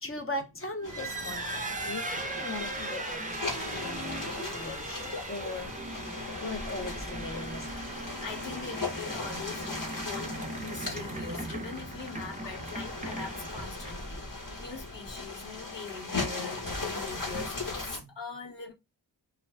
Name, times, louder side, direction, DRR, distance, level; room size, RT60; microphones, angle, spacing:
voice 1, 0.0-4.3 4.5-5.7 6.4-7.7, left 2 dB, 30° left, 0.7 m, -39 dB
sound 1, 0.8-18.0, left 3 dB, 45° left, 1.1 m, -38 dB
sound 2, 0.8-14.2, right 2 dB, 20° right, 0.4 m, -39 dB
voice 2, 7.9-18.7, left 4 dB, 75° left, 1.0 m, -42 dB
2.5 x 2.2 x 3.1 m
wide cardioid pair, 65°, 44 cm